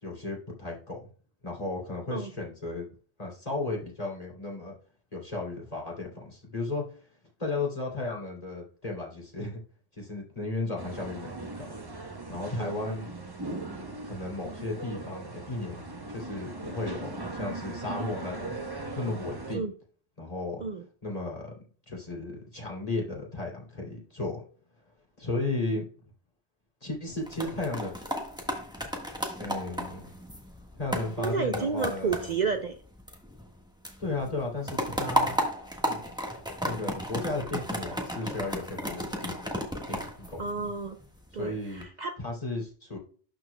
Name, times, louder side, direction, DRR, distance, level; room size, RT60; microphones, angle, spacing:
voice 1, 0.0-1.0 1.4-2.9 3.2-4.8 5.1-6.8 7.4-9.6 9.9-11.7 12.3-13.1 14.0-15.8 16.1-18.5 18.9-19.7 20.2-20.6 21.0-21.5 21.9-24.4 25.2-25.8 26.8-28.0 29.4-30.1 30.7-32.4 34.0-35.4 35.8-36.0 36.6-39.6 39.9-40.5 41.3-41.8 42.2-43.0, left 2 dB, 35° left, -2 dB, 3.1 m, -34 dB
sound 1, 10.8-19.5, right 2 dB, 25° right, 1.0 m, -39 dB
voice 2, 12.6-13.0 19.5-19.7 20.6-20.8 31.2-32.8 40.4-41.0 41.3-42.1, right 5 dB, 50° right, 7 dB, 0.7 m, -31 dB
sound 2, 27.1-33.6 33.8-41.0 41.5-41.8, equal, 5° right, 1.4 m, -34 dB
12.0 x 4.7 x 2.2 m, 0.42 s
omnidirectional pair, 1.1 m